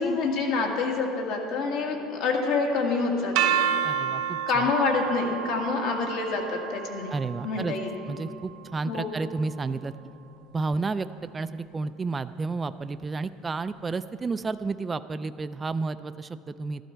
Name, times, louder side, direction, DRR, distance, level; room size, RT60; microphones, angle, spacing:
voice 1, 0.0-3.5 4.5-7.1 7.4-8.0 8.9-9.1, left 4 dB, 70° left, 1 dB, 1.9 m, -27 dB
sound 1, 3.4-9.3, right 9 dB, 75° right, 0.8 m, -31 dB
voice 2, 3.8-4.7 7.1-7.8 8.1-9.9 10.5-11.1 11.3-16.8, right 3 dB, 20° right, 12 dB, 0.3 m, -31 dB
13.0 x 11.5 x 4.5 m, 2.5 s
cardioid pair, 125°, 0 cm